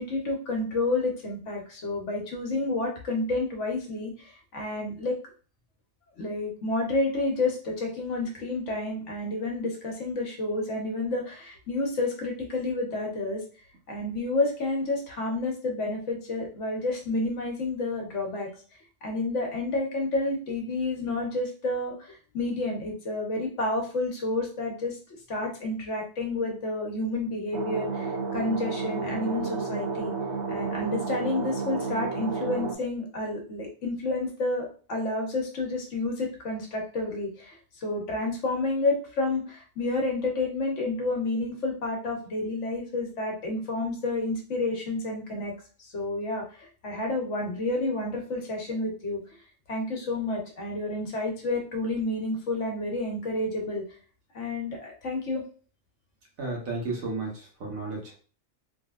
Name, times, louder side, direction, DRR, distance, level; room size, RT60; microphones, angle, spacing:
voice 1, 0.0-5.2 6.2-13.4 13.9-18.5 19.0-25.0 25.3-30.1 30.5-45.5 45.9-49.2 49.7-53.9 54.3-55.4, left 2 dB, 65° left, 1 dB, 1.2 m, -30 dB
sound 1, 27.5-32.8, right 4 dB, 65° right, 0.8 m, -31 dB
voice 2, 56.4-58.1, right 3 dB, 85° right, -1 dB, 1.5 m, -33 dB
3.2 x 2.7 x 2.3 m, 0.39 s
omnidirectional pair, 1.4 m